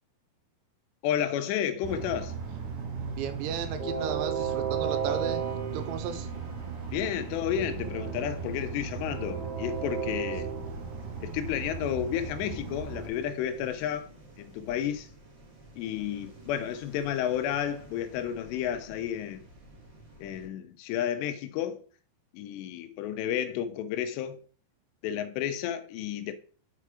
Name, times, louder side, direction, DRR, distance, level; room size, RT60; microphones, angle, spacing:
voice 1, 1.0-2.4 6.9-10.5 11.2-14.1 14.4-15.1 15.8-19.4 20.2-21.8 22.3-24.4 25.0-26.4, left 10 dB, 80° left, 2.7 m, -31 dB
Train, 1.8-13.1, right 6 dB, 65° right, 2.2 m, -34 dB
voice 2, 3.1-5.4 5.7-6.3, right 7 dB, 90° right, 3.1 m, -34 dB
Bowed string instrument, 4.9-8.9, right 4 dB, 10° right, 1.4 m, -50 dB
sound 1, 5.4-20.5, right 1 dB, 40° right, 1.7 m, -52 dB
6.7 x 4.7 x 4.9 m
omnidirectional pair, 5.1 m